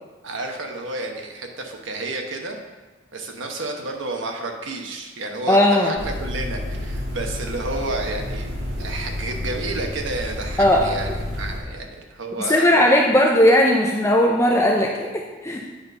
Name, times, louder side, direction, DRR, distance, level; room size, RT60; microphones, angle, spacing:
voice 1, 0.2-2.6 3.1-12.7, right 2 dB, 80° right, 3 dB, 1.0 m, -31 dB
voice 2, 5.5-5.9 10.6-10.8 12.5-15.1 15.4-15.6, left 1 dB, 15° left, 0 dB, 0.5 m, -17 dB
sound 1, 6.0-11.6, left 1 dB, 60° right, 1.6 m, -30 dB
8.6 x 4.1 x 5.5 m, 1.2 s
head